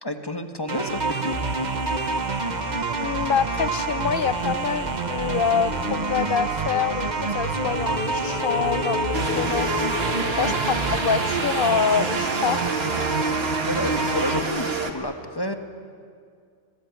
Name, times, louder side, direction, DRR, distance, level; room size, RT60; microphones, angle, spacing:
voice 1, 0.0-1.4 10.3-10.5 13.6-15.5, left 1 dB, 20° left, 6 dB, 1.6 m, -30 dB
sound 1, 0.7-14.4, right 4 dB, 40° right, 1.3 m, -27 dB
voice 2, 3.0-9.7 10.4-12.6, left 6 dB, 55° left, 13 dB, 1.0 m, -26 dB
sound 2, 5.5-10.8, left 8 dB, 85° left, 1.4 m, -34 dB
sound 3, 9.1-14.9, right 2 dB, 65° right, 2.0 m, -28 dB
25.5 x 20.0 x 9.5 m, 2.2 s
omnidirectional pair, 1.1 m